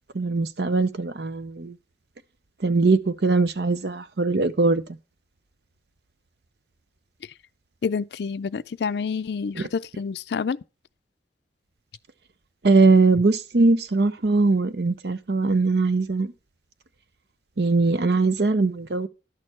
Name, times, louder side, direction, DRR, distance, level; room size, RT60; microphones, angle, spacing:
voice 1, 0.1-1.7 2.6-4.8 9.6-9.7 12.6-16.3 17.6-19.1, right 3 dB, 70° right, 0.7 m, -21 dB
voice 2, 7.8-10.6, left 5 dB, 70° left, 0.4 m, -28 dB
11.0 x 6.5 x 4.3 m
head